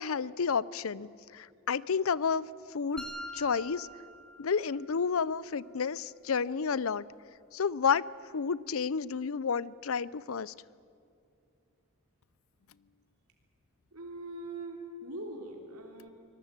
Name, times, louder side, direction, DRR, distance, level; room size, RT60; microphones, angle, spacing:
voice 1, 0.0-3.1 3.3-3.9 4.4-7.1 7.5-8.0 8.3-10.5, left 6 dB, 70° left, 21 dB, 0.6 m, -31 dB
sound 1, 3.0-5.0, equal, 5° left, 1.9 m, -44 dB
voice 2, 13.9-16.1, right 2 dB, 90° right, 1 dB, 3.3 m, -42 dB
25.0 x 19.5 x 8.9 m, 2.5 s
head